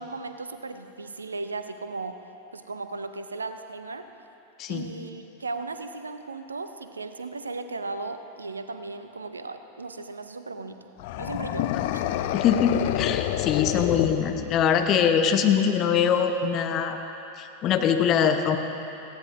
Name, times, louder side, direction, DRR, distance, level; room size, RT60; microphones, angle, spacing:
voice 1, 0.0-2.2 2.5-4.1 4.7-10.8 11.2-12.0, right 3 dB, 75° right, 9 dB, 0.6 m, -36 dB
sound 1, 11.0-14.9, left 12 dB, 50° left, 0.4 m, -28 dB
voice 2, 12.3-17.0 17.4-18.6, left 7 dB, 35° left, 6 dB, 0.8 m, -23 dB
18.5 x 15.5 x 2.5 m, 2.9 s
figure-of-eight pair, 90°, 0 cm